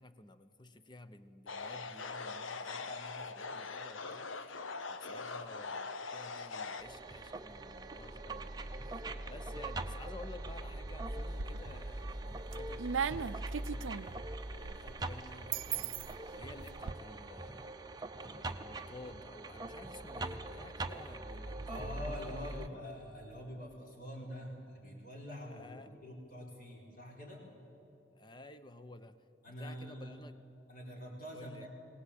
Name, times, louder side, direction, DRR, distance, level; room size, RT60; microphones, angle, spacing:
voice 1, 0.0-4.6 4.9-17.8 18.2-22.8 25.5-26.0 28.1-29.2 29.6-30.5 31.3-31.7, left 2 dB, 25° left, 11 dB, 0.8 m, -53 dB
sound 1, 1.5-6.8, left 4 dB, 90° left, 1.0 m, -42 dB
sound 2, 6.8-22.7, right 2 dB, 20° right, 0.7 m, -42 dB
sound 3, 11.1-11.9 12.3-16.9, right 7 dB, 80° right, 0.5 m, -39 dB
voice 2, 21.7-27.5 29.4-30.2 30.7-31.7, equal, 45° left, 0 dB, 4.4 m, -45 dB
22.0 x 18.5 x 8.6 m, 2.9 s
head